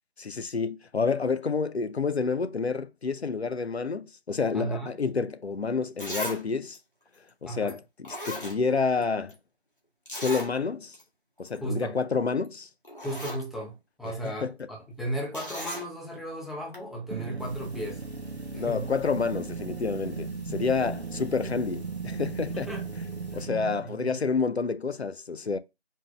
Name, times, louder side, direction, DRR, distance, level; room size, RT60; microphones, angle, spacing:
voice 1, 0.2-6.8 7.4-9.3 10.1-11.0 11.4-12.7 14.0-14.5 18.5-22.7 23.3-25.6, left 4 dB, 85° left, 0.6 m, -29 dB
voice 2, 4.5-4.9 7.5-7.8 11.6-11.9 13.0-18.0 18.5-18.9 20.5-20.7 22.5-22.9 23.8-24.2, right 1 dB, ahead, 0.5 m, -35 dB
Zipper (clothing), 5.4-5.5 6.0-6.4 6.7-6.8 7.7-7.8 8.0-9.0 9.3-9.4 10.1-10.5 10.9-11.0 11.4-11.6 12.4-12.5 12.8-13.4 15.3-15.9 16.7-16.8, equal, 55° left, 1.5 m, -36 dB
sound 1, 17.1-23.9, right 5 dB, 85° right, 0.6 m, -36 dB
sound 2, 17.4-23.5, left 5 dB, 40° right, 1.1 m, -48 dB
4.5 x 2.1 x 3.6 m
figure-of-eight pair, 175°, 32 cm